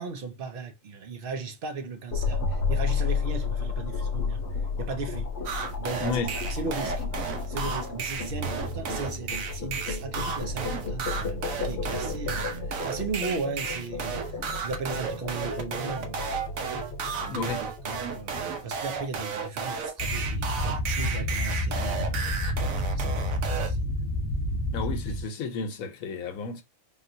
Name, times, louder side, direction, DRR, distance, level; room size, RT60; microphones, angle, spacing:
voice 1, 0.0-4.4 4.8-6.2 6.5-7.1 7.5-16.5 17.1-17.5 17.8-22.6 22.9-23.3 23.7-24.0, right 4 dB, 55° right, 0.6 m, -37 dB
sound 1, 2.1-19.3, left 4 dB, 60° left, 1.0 m, -32 dB
sound 2, 5.5-23.7, right 5 dB, 80° right, 1.1 m, -33 dB
voice 2, 6.0-6.3 17.3-17.6 24.7-26.6, left 4 dB, 80° left, 1.1 m, -32 dB
sound 3, 20.0-25.2, left 1 dB, 20° left, 0.8 m, -29 dB
3.6 x 2.4 x 2.5 m
omnidirectional pair, 1.4 m